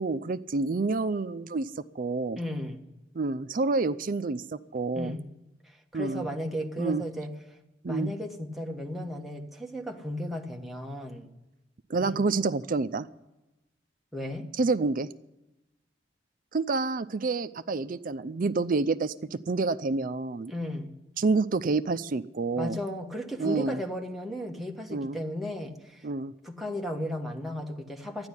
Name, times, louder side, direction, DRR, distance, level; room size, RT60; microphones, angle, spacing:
voice 1, 0.0-1.7 2.0-2.4 3.1-5.1 5.9-6.3 6.8-7.0 7.8-8.1 11.9-13.1 14.6-15.1 16.5-20.5 21.2-22.8 23.4-23.8 24.9-25.2 26.0-26.3, right 3 dB, 50° right, 0.5 m, -28 dB
voice 2, 2.4-2.8 4.9-5.3 5.6-7.3 7.9-11.3 12.0-12.2 14.1-14.5 20.5-20.9 22.6-26.1 26.4-28.3, left 1 dB, ahead, 1.3 m, -35 dB
12.5 x 10.5 x 9.8 m
head